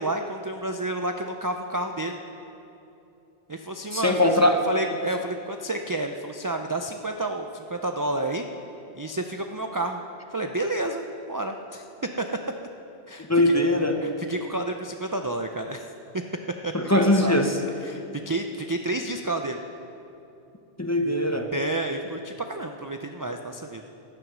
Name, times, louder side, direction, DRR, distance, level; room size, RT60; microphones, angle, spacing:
voice 1, 0.0-2.2 3.5-4.3 4.7-8.4 8.9-10.0 10.3-11.8 12.2-12.3 13.1-13.5 14.0-15.9 16.6-17.4 17.8-19.6 21.5-23.8, right 2 dB, 30° right, 4 dB, 0.4 m, -30 dB
voice 2, 3.9-4.7 13.2-14.0 16.7-17.6 20.8-21.5, left 1 dB, 15° left, 4 dB, 0.9 m, -21 dB
16.0 x 11.0 x 6.2 m, 2.8 s
omnidirectional pair, 1.2 m